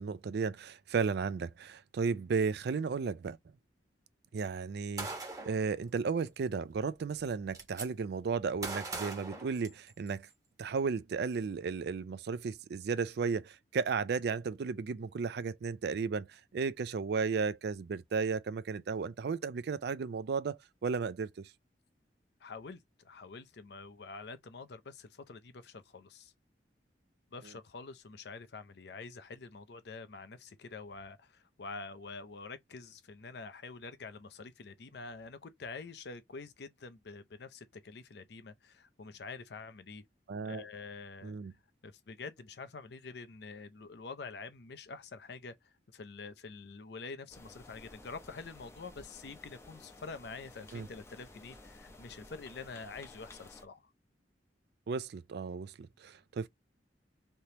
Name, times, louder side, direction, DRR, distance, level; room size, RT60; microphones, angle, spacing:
voice 1, 0.0-3.4 4.3-5.1 5.4-10.3 10.6-21.5 40.3-40.6 41.2-41.5 50.7-50.9 54.9-56.5, right 5 dB, 60° right, 0.4 m, -34 dB
Gunshot gunfire, 5.0-5.6 6.8-6.9 7.2-7.9 8.6-10.1, right 3 dB, 20° right, 1.0 m, -40 dB
voice 2, 22.4-26.3 27.3-40.0 40.5-41.3 41.8-53.9, left 4 dB, 65° left, 0.6 m, -47 dB
sound 1, 47.3-53.6, left 2 dB, 15° left, 0.6 m, -54 dB
3.4 x 2.9 x 2.7 m
head